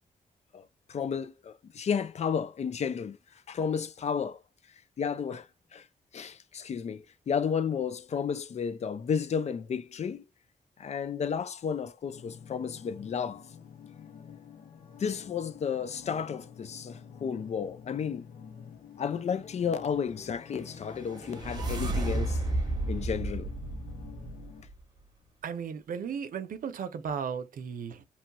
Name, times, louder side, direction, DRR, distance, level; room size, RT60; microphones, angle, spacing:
voice 1, 0.5-4.4 5.0-5.9 6.1-10.2 10.8-13.5 15.0-18.3 19.0-22.4 22.9-23.5, left 7 dB, 50° left, 0.4 m, -32 dB
sound 1, 12.1-24.6, left 7 dB, 80° left, 0.8 m, -49 dB
sound 2, 20.6-24.7, right 2 dB, 30° right, 1.0 m, -32 dB
voice 2, 25.4-28.0, right 7 dB, 70° right, 0.6 m, -35 dB
3.0 x 2.3 x 2.8 m
wide cardioid pair, 115°, 15 cm